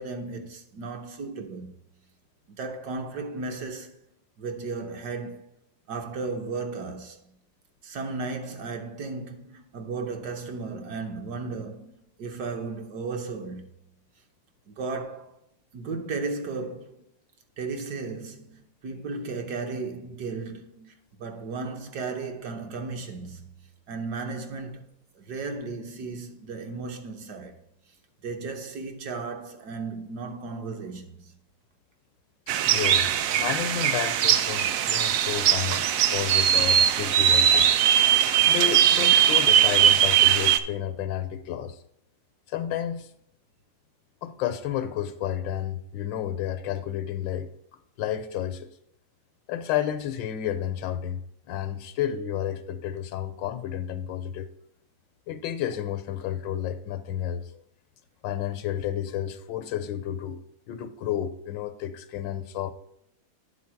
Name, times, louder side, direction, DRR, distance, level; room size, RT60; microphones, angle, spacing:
voice 1, 0.0-1.7 2.5-3.9 4.4-5.5 5.9-7.2 7.8-13.7 14.7-15.3 15.7-17.0 17.6-23.5 23.9-24.9 25.1-27.6 28.2-31.3, right 4 dB, 65° right, 1.4 m, -35 dB
sound 1, 32.5-40.6, right 9 dB, 85° right, 0.7 m, -20 dB
voice 2, 32.7-33.1 33.4-37.7 38.5-41.8 42.5-43.1 44.2-47.5 48.0-48.7 49.5-51.2 51.5-54.5 55.3-57.5 58.2-60.4 60.7-62.7, left 10 dB, 85° left, 1.4 m, -31 dB
9.4 x 4.1 x 5.8 m
omnidirectional pair, 2.0 m